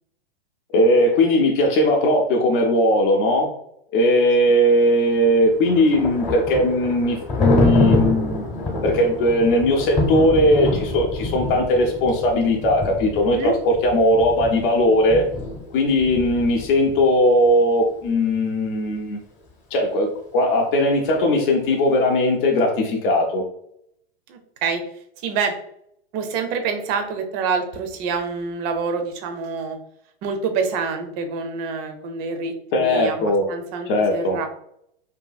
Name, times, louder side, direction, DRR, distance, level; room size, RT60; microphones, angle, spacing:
voice 1, 0.7-3.5 3.9-8.5 8.8-15.2 15.7-19.2 19.7-23.4 32.7-33.5 33.9-34.4, left 1 dB, 60° left, 0 dB, 0.6 m, -19 dB
Thunder, 5.2-17.0, left 2 dB, 20° left, 0.8 m, -26 dB
voice 2, 13.2-13.5 24.3-24.8 25.2-25.5 26.1-29.8 30.2-34.5, right 5 dB, 30° right, 6 dB, 0.4 m, -26 dB
2.7 x 2.6 x 2.3 m, 0.72 s
hypercardioid pair, 135°, 30 cm